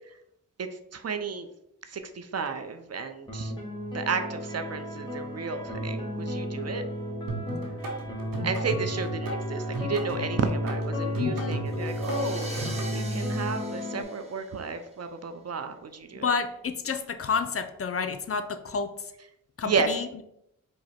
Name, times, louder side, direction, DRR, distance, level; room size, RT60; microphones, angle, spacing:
voice 1, 0.6-1.5 1.9-3.5 3.9-6.8 8.4-16.3 19.6-19.9, right 5 dB, 50° right, 8 dB, 0.6 m, -32 dB
sound 1, 3.3-14.0, left 1 dB, 15° left, 1.5 m, -33 dB
sound 2, 7.3-12.9, right 2 dB, 80° right, 0.9 m, -37 dB
voice 2, 11.2-11.7 16.1-19.1 19.6-20.2, left 5 dB, 45° left, 8 dB, 0.5 m, -30 dB
sound 3, 11.7-14.9, right 1 dB, 20° right, 1.2 m, -41 dB
4.9 x 2.2 x 4.2 m, 0.79 s
cardioid pair, 50°, 34 cm